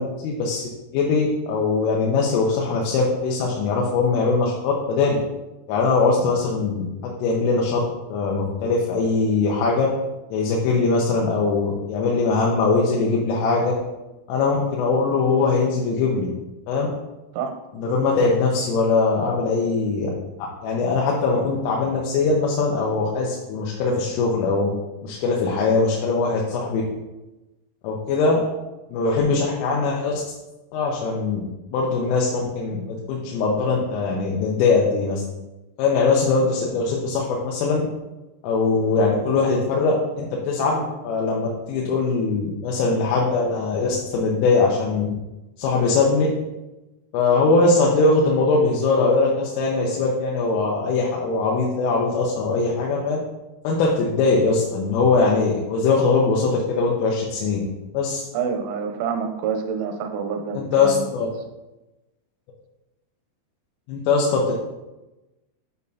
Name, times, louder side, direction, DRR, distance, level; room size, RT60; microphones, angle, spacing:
voice 1, 0.0-5.2 5.7-7.8 8.1-9.9 10.3-13.7 14.3-16.3 16.7-16.9 17.8-20.1 20.6-24.7 25.0-26.8 27.8-28.5 28.9-30.2 30.7-31.4 31.7-32.3 32.6-35.2 35.8-37.8 38.4-45.1 45.6-46.3 47.1-53.2 53.6-57.6 57.9-58.2 60.5-61.3 63.9-64.5, left 4 dB, 80° left, -3 dB, 3.3 m, -21 dB
voice 2, 58.3-61.1, right 6 dB, 80° right, 5 dB, 3.0 m, -27 dB
8.5 x 5.2 x 2.7 m, 1.0 s
omnidirectional pair, 5.8 m